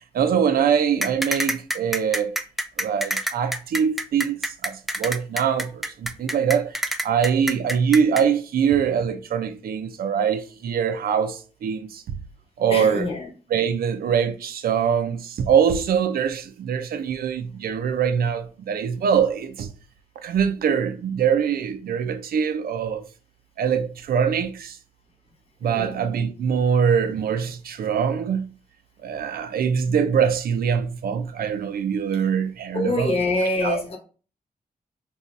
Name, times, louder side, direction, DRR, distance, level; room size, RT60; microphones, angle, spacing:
voice 1, 0.1-2.3 2.8-6.8 7.0-12.2 12.6-13.1 13.5-19.7 20.2-23.1 23.6-24.8 25.6-28.5 29.0-33.1 33.6-33.8, right 7 dB, 80° right, 0.4 m, -23 dB
sound 1, 1.0-8.2, right 1 dB, ahead, 0.3 m, -26 dB
voice 2, 12.7-13.3 25.7-26.0 32.7-34.0, left 2 dB, 40° left, 0.9 m, -25 dB
2.6 x 2.3 x 4.0 m
cardioid pair, 65°, 15 cm